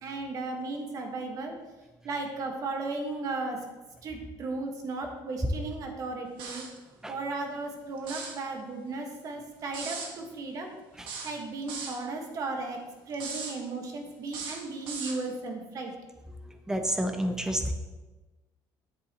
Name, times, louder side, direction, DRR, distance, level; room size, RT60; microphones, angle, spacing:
voice 1, 0.0-1.6 2.0-3.6 4.0-6.6 7.1-10.7 11.2-12.8 13.1-15.9, right 3 dB, 45° right, 3 dB, 1.4 m, -35 dB
sound 1, 6.4-6.8 8.0-8.4 9.7-10.1 11.1-12.0 13.1-13.6 14.3-15.2, right 4 dB, 75° right, 1.5 m, -38 dB
voice 2, 16.4-17.7, equal, 5° right, 6 dB, 0.7 m, -30 dB
9.8 x 7.8 x 2.9 m, 1.2 s
cardioid pair, 150°, 8 cm